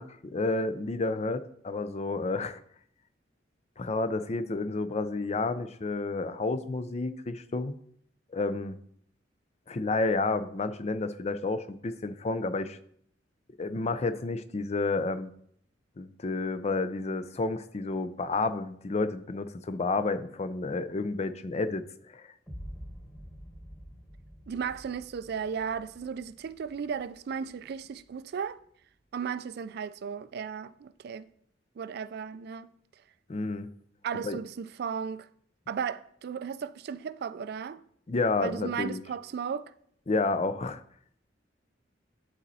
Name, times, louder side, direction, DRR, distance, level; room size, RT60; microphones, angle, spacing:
voice 1, 0.0-2.6 3.8-7.8 8.3-8.8 9.7-12.8 13.6-15.3 16.0-21.8 22.1-22.3 33.3-33.7 34.2-34.4 38.1-39.0 40.1-40.8, left 3 dB, 35° left, 0.5 m, -30 dB
sound 1, 22.5-28.5, equal, 15° left, 1.8 m, -48 dB
voice 2, 24.5-28.6 29.1-31.3 31.8-32.7 34.0-35.3 35.7-37.8 38.4-39.7, right 6 dB, 60° right, 0.3 m, -35 dB
11.0 x 4.2 x 4.1 m
head